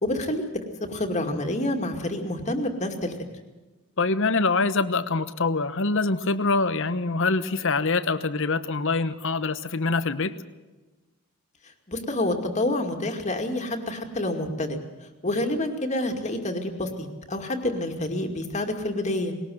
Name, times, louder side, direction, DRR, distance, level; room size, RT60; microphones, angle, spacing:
voice 1, 0.0-3.2 11.9-14.8 15.2-19.3, left 1 dB, 30° left, 4 dB, 2.4 m, -28 dB
voice 2, 4.0-10.3, left 3 dB, 60° left, 13 dB, 1.1 m, -24 dB
20.5 x 19.0 x 7.8 m, 1.2 s
head